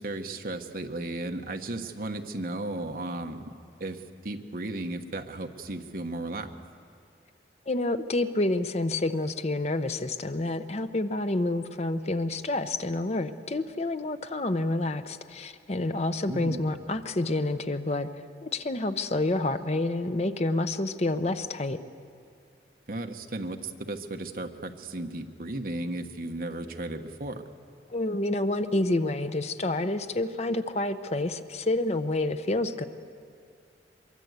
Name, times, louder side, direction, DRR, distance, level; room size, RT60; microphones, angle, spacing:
voice 1, 0.0-3.5 3.8-6.5 16.3-16.7 22.9-27.4, right 2 dB, 55° right, 5 dB, 1.2 m, -35 dB
voice 2, 7.7-18.1 18.4-21.8 27.9-32.8, left 2 dB, 40° left, 9 dB, 0.7 m, -28 dB
24.0 x 22.5 x 8.1 m, 2.4 s
head